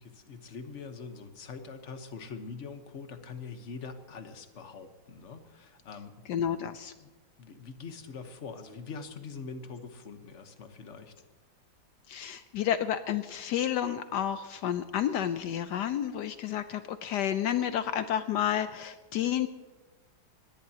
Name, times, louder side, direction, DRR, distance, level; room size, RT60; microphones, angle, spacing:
voice 1, 0.0-6.2 7.0-7.1 7.4-11.1, left 5 dB, 45° left, 8 dB, 1.3 m, -43 dB
voice 2, 6.3-6.9 12.1-19.5, left 10 dB, 75° left, 11 dB, 1.2 m, -30 dB
21.5 x 17.5 x 2.9 m, 1.3 s
omnidirectional pair, 2.0 m